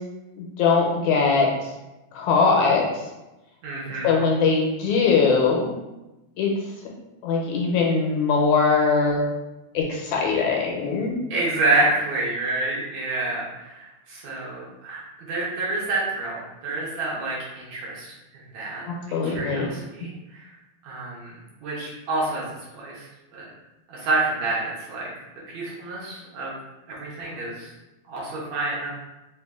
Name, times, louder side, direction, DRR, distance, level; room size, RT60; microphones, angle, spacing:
voice 1, 0.4-1.5 2.1-2.8 4.0-5.7 6.4-6.5 7.2-9.3 9.7-11.2 18.9-19.7, left 5 dB, 80° left, -1 dB, 1.9 m, -21 dB
voice 2, 3.6-4.5 10.3-10.4 11.3-15.0 15.3-18.1 18.3-20.5 20.8-22.4 22.8-23.1 23.3-23.5 23.9-25.1 25.5-26.5 26.9-27.7 28.1-28.9, right 2 dB, 70° right, -5 dB, 2.1 m, -28 dB
4.9 x 2.5 x 3.4 m, 1.0 s
omnidirectional pair, 3.6 m